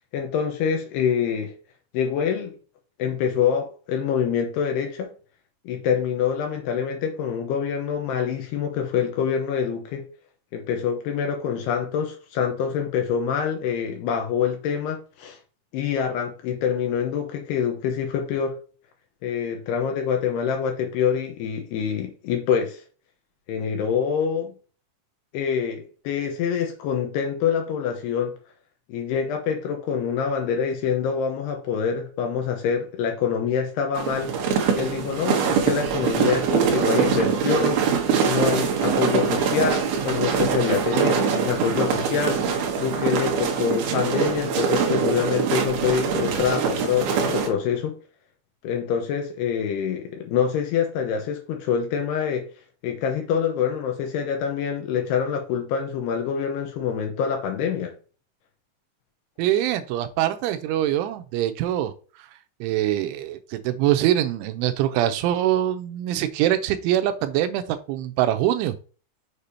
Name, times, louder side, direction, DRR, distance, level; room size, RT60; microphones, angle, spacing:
voice 1, 0.1-1.5 1.9-2.5 3.0-5.1 5.7-10.0 10.5-15.4 15.7-18.5 19.2-22.8 23.5-24.5 25.3-28.3 28.9-34.3 34.8-37.8 38.2-42.4 42.8-48.0 48.6-52.5 52.8-57.9, left 7 dB, 75° left, 2.6 m, -25 dB
sound 1, 33.9-47.5, right 6 dB, 65° right, 2.7 m, -23 dB
voice 2, 59.4-61.9 62.6-68.8, right 12 dB, 85° right, 3.1 m, -23 dB
6.7 x 6.6 x 2.8 m
omnidirectional pair, 5.5 m